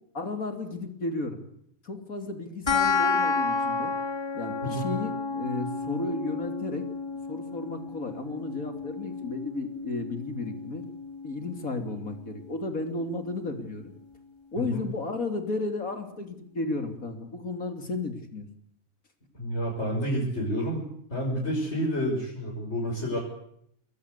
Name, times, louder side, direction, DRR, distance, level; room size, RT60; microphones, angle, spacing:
voice 1, 0.1-1.4 1.8-3.9 4.3-6.8 7.3-10.8 11.2-13.9 14.5-18.5, left 3 dB, 85° left, 6 dB, 3.7 m, -33 dB
sound 1, 2.7-13.6, left 4 dB, 20° left, 2.8 m, -32 dB
voice 2, 19.3-23.2, equal, 50° left, -3 dB, 7.0 m, -29 dB
28.5 x 21.5 x 8.4 m, 0.72 s
omnidirectional pair, 1.4 m